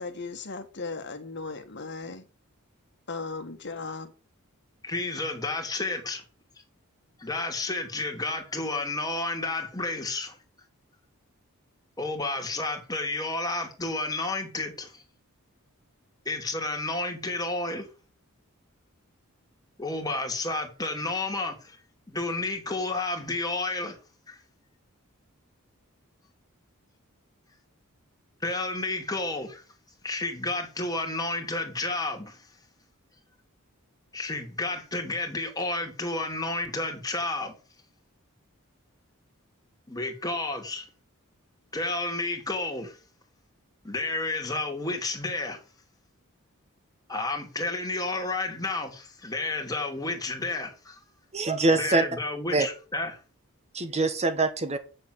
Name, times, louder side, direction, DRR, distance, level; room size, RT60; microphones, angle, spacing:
voice 1, 0.0-2.2 3.1-4.1, left 4 dB, 55° left, 1.5 m, -37 dB
voice 2, 4.8-6.2 7.2-10.4 12.0-15.0 16.2-17.9 19.8-21.8 22.1-24.0 24.3-24.4 28.4-29.6 30.0-32.5 34.1-37.6 39.9-40.9 41.7-43.0 43.8-45.6 47.1-51.0 51.7-53.2, left 2 dB, 15° left, 2.5 m, -31 dB
voice 3, 51.3-52.0 52.5-52.7 53.7-54.8, right 3 dB, 30° right, 1.0 m, -24 dB
7.7 x 6.9 x 7.8 m
head